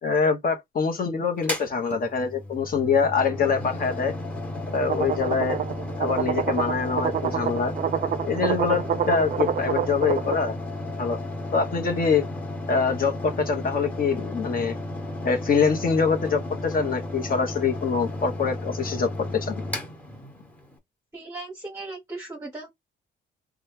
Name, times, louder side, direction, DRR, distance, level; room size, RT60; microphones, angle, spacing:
voice 1, 0.0-4.1 4.7-5.6 6.0-7.7 8.3-10.5 11.0-11.2 11.5-12.2 12.7-14.7 15.2-19.6, left 5 dB, 45° left, 1.1 m, -24 dB
Mechanical fan, 1.4-20.8, left 1 dB, 10° left, 1.2 m, -34 dB
sound 1, 4.9-10.4, right 9 dB, 45° right, 0.4 m, -28 dB
voice 2, 21.1-22.7, right 2 dB, 15° right, 1.0 m, -37 dB
3.0 x 2.4 x 3.2 m
cardioid pair, 90°, 20 cm